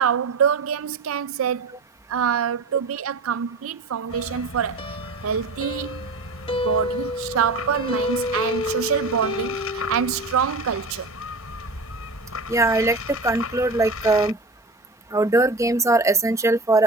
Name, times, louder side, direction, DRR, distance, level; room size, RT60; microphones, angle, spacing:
voice 1, 0.0-1.8 2.1-5.0 5.2-6.1 6.5-11.1, right 8 dB, 70° right, 0.4 m, -25 dB
sound 1, 4.1-14.3, left 4 dB, 90° left, 7.2 m, -36 dB
sound 2, 4.1-10.3, left 2 dB, 25° left, 1.4 m, -30 dB
voice 2, 12.5-13.0 13.2-14.4 15.1-16.8, right 2 dB, 15° right, 0.9 m, -20 dB
head